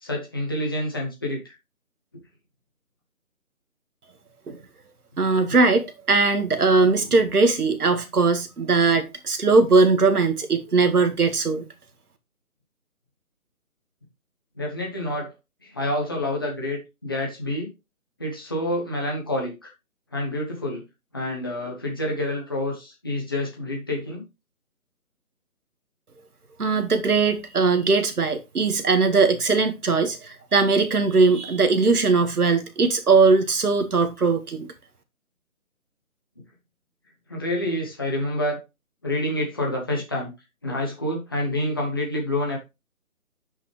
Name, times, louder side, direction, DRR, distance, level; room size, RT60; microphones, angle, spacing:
voice 1, 0.0-1.5 14.6-15.3 15.6-17.7 18.2-19.7 20.1-20.8 21.1-24.2 37.3-38.6 39.0-40.3 40.6-42.6, left 1 dB, 15° left, 1.0 m, -28 dB
voice 2, 5.2-11.6 26.6-34.7, right 4 dB, 85° right, 2.0 m, -20 dB
8.3 x 5.6 x 3.3 m
hypercardioid pair, 175°, 44 cm